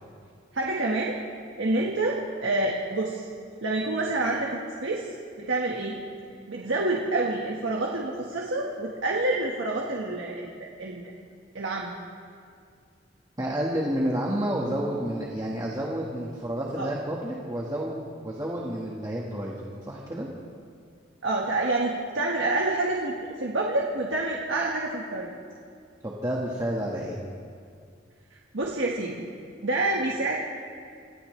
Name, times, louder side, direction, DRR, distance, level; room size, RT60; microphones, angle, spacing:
voice 1, 0.5-1.2 1.6-3.3 3.6-5.1 5.4-6.0 6.5-11.1 11.5-11.9 16.8-16.9 21.2-25.3 28.5-29.2 29.6-30.4, right 2 dB, 85° right, -1 dB, 1.6 m, -27 dB
voice 2, 13.4-20.3 26.0-27.2, right 1 dB, 20° right, -3 dB, 1.6 m, -30 dB
27.0 x 16.0 x 3.3 m, 2.3 s
head